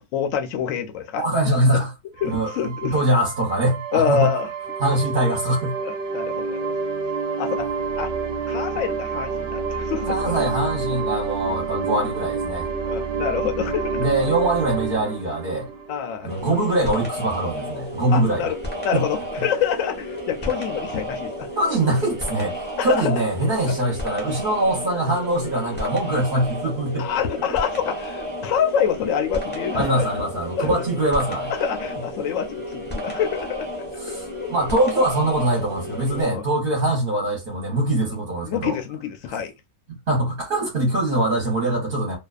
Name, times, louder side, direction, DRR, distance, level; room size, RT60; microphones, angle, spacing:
voice 1, 0.0-1.2 2.2-2.9 3.9-4.5 5.8-6.7 7.4-7.7 8.0-8.1 8.5-10.4 12.8-14.1 15.9-16.3 18.1-18.6 18.8-21.5 22.8-23.2 27.0-30.0 30.6-30.8 31.6-33.7 34.1-34.5 36.2-36.4 38.5-39.5, left 8 dB, 70° left, 0.8 m, -26 dB
voice 2, 1.2-1.9 2.2-4.4 4.8-5.8 10.1-12.7 14.0-15.7 16.2-18.5 18.9-19.0 21.5-27.1 29.7-31.5 34.0-38.8 39.3-39.4 39.9-42.2, right 1 dB, 40° right, 0.9 m, -23 dB
sound 1, 2.2-16.6, right 4 dB, 75° right, 0.6 m, -28 dB
sound 2, 16.3-36.2, equal, 15° left, 0.4 m, -32 dB
2.6 x 2.2 x 2.3 m
omnidirectional pair, 1.6 m